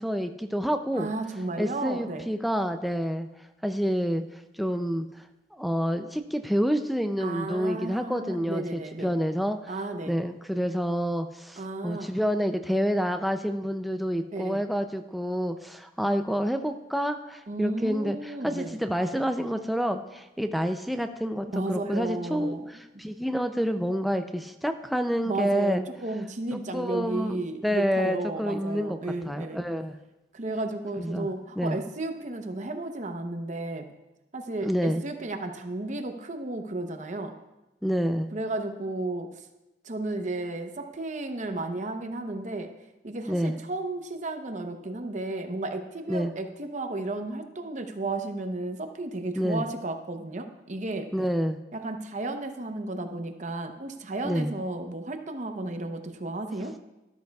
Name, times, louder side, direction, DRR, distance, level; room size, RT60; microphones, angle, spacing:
voice 1, 0.0-1.1 1.6-3.3 3.6-5.1 5.5-9.7 10.1-22.6 23.0-25.8 26.5-27.4 27.6-29.0 29.3-30.0 31.0-31.3 31.6-31.8 34.6-35.0 37.8-38.3 43.3-43.6 46.1-46.3 49.4-49.6 51.1-51.6 54.2-54.5, equal, ahead, 6 dB, 0.4 m, -28 dB
voice 2, 1.0-2.3 7.2-9.1 9.7-10.2 11.6-12.1 14.3-14.6 17.5-18.8 21.5-22.6 25.2-29.6 30.3-33.9 34.3-37.3 38.3-39.5 39.8-42.7 43.0-51.1 51.7-56.7, right 2 dB, 40° right, 6 dB, 0.8 m, -33 dB
13.0 x 12.5 x 2.3 m, 0.98 s
head